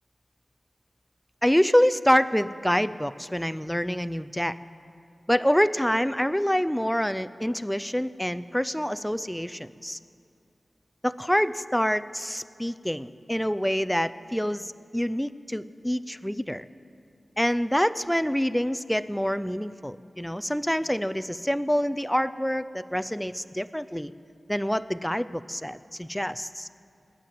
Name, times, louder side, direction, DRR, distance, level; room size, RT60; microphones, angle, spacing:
voice 1, 1.4-4.6 5.3-10.0 11.0-16.7 17.4-24.1 24.5-26.7, equal, 5° left, 15 dB, 0.4 m, -26 dB
19.5 x 9.2 x 7.4 m, 2.5 s
wide cardioid pair, 75°, 0 cm